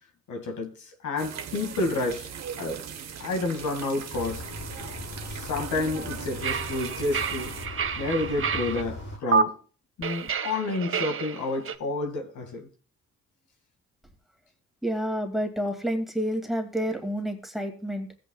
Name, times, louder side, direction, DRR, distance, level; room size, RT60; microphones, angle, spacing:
voice 1, 0.3-2.3 2.6-2.8 3.2-4.4 5.3-7.5 8.0-9.5 10.0-12.7, left 2 dB, 75° left, 2.0 m, -30 dB
sound 1, 1.2-7.7, right 8 dB, 60° right, 1.1 m, -39 dB
sound 2, 4.1-9.2, left 2 dB, 60° left, 6.2 m, -39 dB
sound 3, 6.4-8.8 9.3-9.4 10.0-11.8, right 6 dB, 45° right, 0.8 m, -29 dB
voice 2, 14.8-18.2, equal, ahead, 2.1 m, -29 dB
15.5 x 8.5 x 2.3 m
cardioid pair, 75°, 30 cm